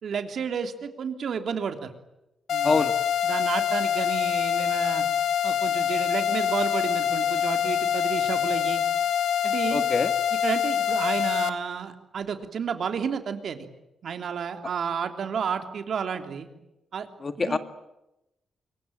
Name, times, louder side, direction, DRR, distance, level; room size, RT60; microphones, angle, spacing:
voice 1, 0.0-1.9 2.5-2.9 3.2-5.0 5.4-8.8 9.4-9.9 10.4-13.7 14.0-16.5 16.9-17.1 17.4-17.6, right 6 dB, 60° right, 7 dB, 3.2 m, -31 dB
sound 1, 2.5-11.5, left 9 dB, 75° left, 1.9 m, -25 dB
voice 2, 9.7-10.1 17.2-17.6, left 4 dB, 35° left, 10 dB, 1.7 m, -24 dB
26.0 x 23.5 x 9.0 m, 0.91 s
cardioid pair, 125°, 0 cm